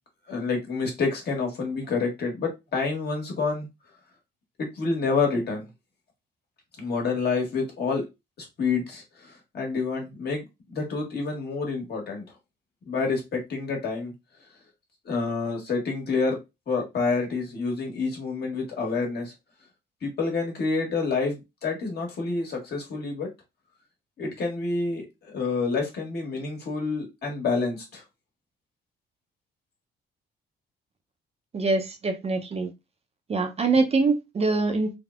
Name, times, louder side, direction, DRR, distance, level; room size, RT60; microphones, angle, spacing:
voice 1, 0.3-3.7 4.6-5.7 6.8-8.0 8.6-10.4 10.7-12.2 12.9-14.1 15.0-16.4 16.7-19.3 20.0-23.3 24.2-28.0, left 4 dB, 55° left, 1.2 m, -28 dB
voice 2, 31.5-32.7 33.3-34.9, right 3 dB, 30° right, 0.5 m, -24 dB
3.3 x 2.0 x 2.3 m
cardioid pair, 90°, 20 cm